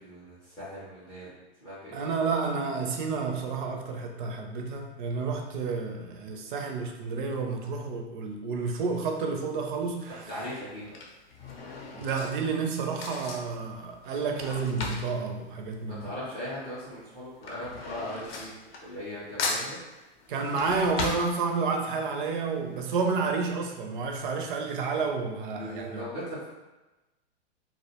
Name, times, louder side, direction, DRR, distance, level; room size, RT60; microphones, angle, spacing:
voice 1, 0.0-1.3 1.6-2.0 10.1-11.0 15.8-18.5 18.8-19.8 25.6-26.5, equal, 15° left, -10 dB, 0.4 m, -39 dB
voice 2, 1.9-10.2 11.9-16.1 20.3-26.0, right 4 dB, 50° right, 3 dB, 0.4 m, -30 dB
Drawer open or close / Cutlery silverware, 9.4-9.8 10.6-16.5 16.8-19.1 19.4-21.9 22.3-22.4 22.6-22.7, left 3 dB, 60° left, 0.6 m, -37 dB
2.3 x 2.1 x 2.8 m, 1.1 s
hypercardioid pair, 145°, 34 cm